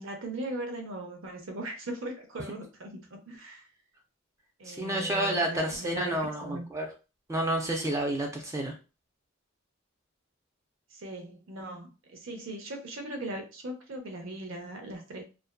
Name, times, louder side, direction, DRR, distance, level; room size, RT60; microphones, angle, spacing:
voice 1, 0.0-3.7 4.6-6.7 10.9-15.2, right 1 dB, 65° right, 3 dB, 0.7 m, -39 dB
voice 2, 4.7-6.9 7.3-8.7, right 1 dB, 15° right, 2 dB, 0.4 m, -30 dB
2.5 x 2.2 x 2.2 m, 0.32 s
head